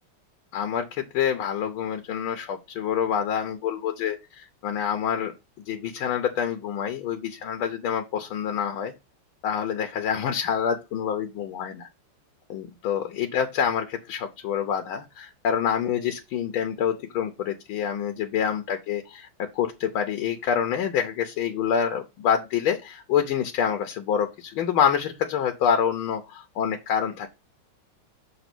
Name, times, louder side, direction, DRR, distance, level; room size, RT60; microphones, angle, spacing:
voice 1, 0.5-5.3 5.7-8.9 9.4-11.9 12.5-27.3, left 8 dB, 80° left, 5 dB, 1.6 m, -27 dB
7.1 x 3.0 x 6.0 m, 0.26 s
omnidirectional pair, 2.2 m